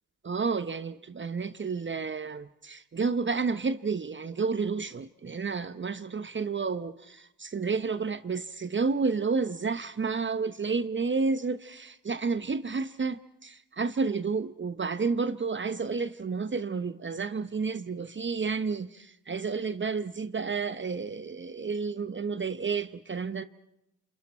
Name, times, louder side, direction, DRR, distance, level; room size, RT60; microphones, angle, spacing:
voice 1, 0.2-23.5, right 4 dB, 30° right, 0.9 m, -31 dB
29.5 x 27.0 x 4.4 m
hypercardioid pair, 45°, 38 cm